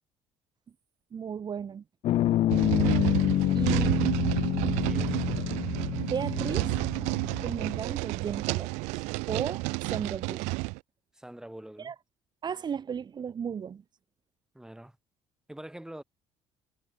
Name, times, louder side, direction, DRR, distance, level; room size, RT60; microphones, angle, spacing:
voice 1, 1.1-1.8 3.5-3.9 6.0-6.8 7.4-10.5 11.8-11.9 12.4-13.8, right 7 dB, 40° right, 2.1 m, -35 dB
sound 1, 2.0-7.8, left 13 dB, 60° left, 1.1 m, -28 dB
sound 2, 2.5-10.8, right 28 dB, 85° right, 0.4 m, -30 dB
voice 2, 3.6-4.1 4.8-5.3 11.1-11.9 14.5-15.0 15.5-16.0, right 1 dB, 5° right, 4.8 m, -45 dB
sound 3, 6.4-9.1, left 2 dB, 10° left, 6.0 m, -56 dB
cardioid pair, 95°, 11 cm